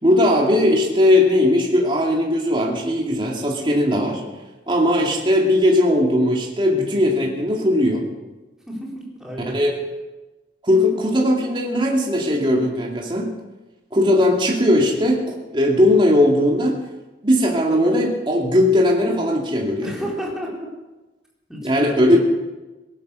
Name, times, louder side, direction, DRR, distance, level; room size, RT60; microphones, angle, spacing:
voice 1, 0.0-4.2 4.7-8.0 9.5-9.8 10.6-13.3 13.9-16.8 17.2-19.9 21.6-22.2, left 1 dB, 30° right, -1 dB, 2.3 m, -18 dB
voice 2, 8.7-9.7 19.8-20.5 21.5-22.2, equal, 5° right, -3 dB, 3.9 m, -31 dB
18.0 x 11.5 x 6.8 m, 1.1 s
head